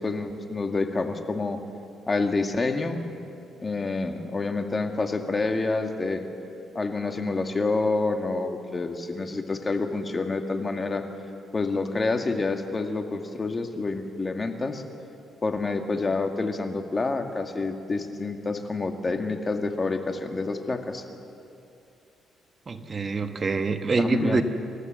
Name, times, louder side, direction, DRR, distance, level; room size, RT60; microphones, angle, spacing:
voice 1, 0.0-1.6 2.1-3.0 3.6-6.3 6.8-11.0 11.5-14.8 15.4-21.0 24.0-24.4, left 3 dB, 30° left, 5 dB, 1.9 m, -28 dB
voice 2, 22.7-24.4, right 4 dB, 35° right, 7 dB, 1.2 m, -25 dB
27.0 x 14.5 x 7.8 m, 2.6 s
cardioid pair, 90°, 0 cm